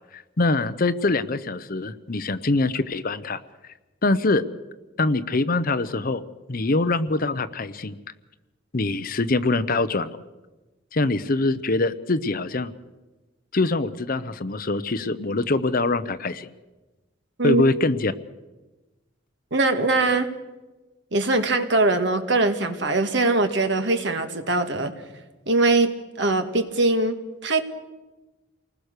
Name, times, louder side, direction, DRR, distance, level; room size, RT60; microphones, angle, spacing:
voice 1, 0.1-3.4 4.0-4.4 5.0-6.2 6.5-8.0 8.7-10.2 10.9-12.7 13.5-16.5 17.4-18.1, left 2 dB, 45° left, 13 dB, 0.8 m, -24 dB
voice 2, 19.5-20.3 21.1-24.9 25.5-27.6, right 2 dB, 60° right, 7 dB, 1.9 m, -22 dB
28.5 x 20.0 x 6.7 m, 1.2 s
head